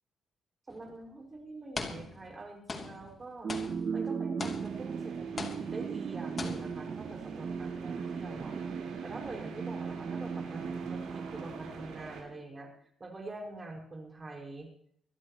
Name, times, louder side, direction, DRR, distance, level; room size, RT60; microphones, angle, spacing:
sound 1, 0.7-0.9 1.8-2.4 2.7-5.0 5.4-6.1 6.4-7.0, left 3 dB, 35° left, 3.1 m, -41 dB
voice 1, 0.7-3.5 3.9-8.6 9.0-12.7 13.0-14.7, right 2 dB, 25° right, 1 dB, 5.5 m, -45 dB
sound 2, 3.4-12.2, right 6 dB, 50° right, 0.9 m, -37 dB
sound 3, 4.6-12.2, right 5 dB, 75° right, 7.2 m, -47 dB
25.0 x 12.0 x 3.1 m, 0.65 s
cardioid pair, 90°, 0 cm